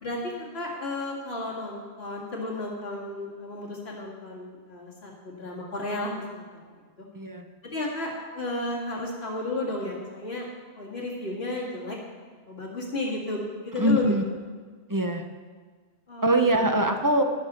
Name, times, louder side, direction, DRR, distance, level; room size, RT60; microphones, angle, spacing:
voice 1, 0.0-7.1 7.7-10.5 10.8-12.0 12.5-14.1 16.1-16.3, left 2 dB, 75° left, -3 dB, 2.3 m, -33 dB
voice 2, 7.1-7.5 13.8-14.2 14.9-15.2 16.2-17.2, right 1 dB, 20° right, 4 dB, 0.7 m, -23 dB
20.0 x 6.7 x 4.3 m, 1.5 s
omnidirectional pair, 1.0 m